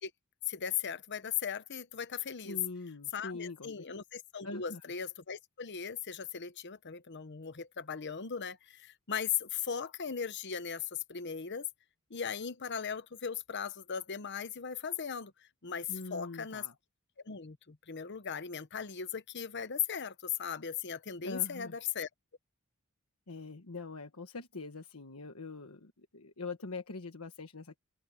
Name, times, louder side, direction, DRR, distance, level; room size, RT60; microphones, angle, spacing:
voice 1, 0.5-2.6 3.1-11.7 12.1-15.3 15.6-16.7 17.2-22.1, left 7 dB, 55° left, 1.0 m, -38 dB
voice 2, 2.4-3.8 4.4-4.9 15.9-16.7 21.2-21.8 23.3-27.8, left 3 dB, 80° left, 1.4 m, -43 dB
open air
head